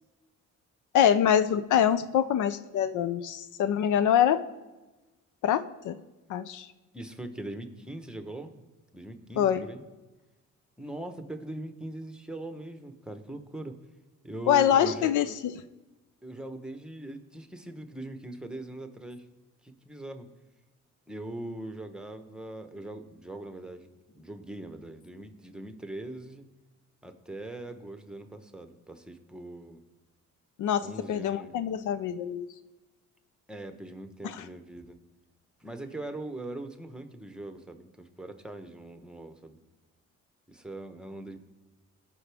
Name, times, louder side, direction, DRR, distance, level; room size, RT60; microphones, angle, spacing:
voice 1, 0.9-4.4 5.4-6.0 6.3-6.7 9.4-9.7 14.5-15.5 30.6-32.5 34.2-34.4, left 9 dB, 80° left, 13 dB, 0.6 m, -25 dB
voice 2, 6.9-8.7 8.9-9.8 10.8-13.8 14.2-15.1 16.2-19.3 19.6-20.3 21.1-26.5 27.0-29.8 30.8-31.5 33.5-35.0 35.6-39.6 40.5-41.4, right 1 dB, 5° right, 7 dB, 1.0 m, -41 dB
18.0 x 6.1 x 3.5 m, 1.1 s
cardioid pair, 90°, 30 cm